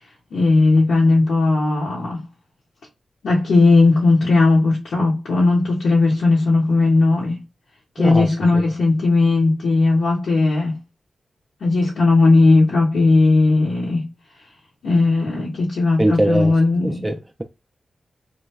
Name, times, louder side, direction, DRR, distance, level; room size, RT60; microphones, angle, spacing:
voice 1, 0.3-2.2 3.2-7.4 7.9-10.8 11.6-14.1 14.8-17.1, left 3 dB, 85° left, 1.1 m, -17 dB
voice 2, 8.0-8.6 16.0-16.6 16.8-17.4, right 1 dB, 20° right, 0.5 m, -21 dB
3.1 x 2.2 x 3.2 m
cardioid pair, 45°, 0 cm